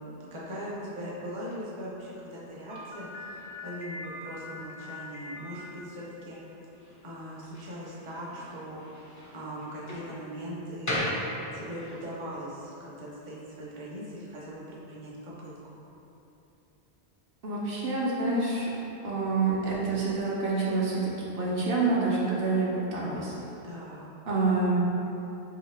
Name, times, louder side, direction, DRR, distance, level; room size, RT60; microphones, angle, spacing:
voice 1, 0.0-6.4 7.0-11.1 11.5-15.8 23.6-24.1, equal, 35° right, -6 dB, 0.6 m, -40 dB
Slam, 2.7-12.0, left 1 dB, 25° left, 0.4 m, -39 dB
voice 2, 17.4-18.7 19.0-23.3 24.3-24.8, right 3 dB, 65° right, -6 dB, 0.8 m, -27 dB
2.8 x 2.7 x 4.4 m, 3.0 s
omnidirectional pair, 1.1 m